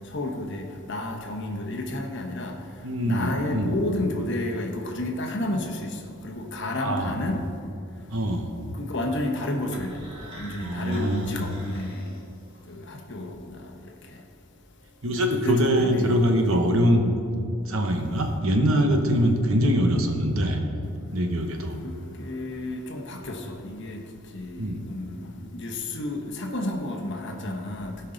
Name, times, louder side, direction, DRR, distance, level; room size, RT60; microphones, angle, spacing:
voice 1, 0.1-2.5 3.0-6.0 6.2-7.4 8.8-10.0 10.3-12.0 12.7-13.4 15.4-16.2 21.8-21.9 22.2-24.0 24.3-27.9, left 1 dB, 55° left, 2 dB, 1.0 m, -31 dB
voice 2, 2.8-3.7 6.8-7.2 8.1-8.5 10.6-11.5 15.0-17.1 17.6-20.6 21.1-21.8 24.6-24.8, equal, 70° right, 4 dB, 1.0 m, -23 dB
sound 1, 9.7-12.7, right 1 dB, 25° right, 2.2 m, -46 dB
16.5 x 5.5 x 3.9 m, 2.6 s
head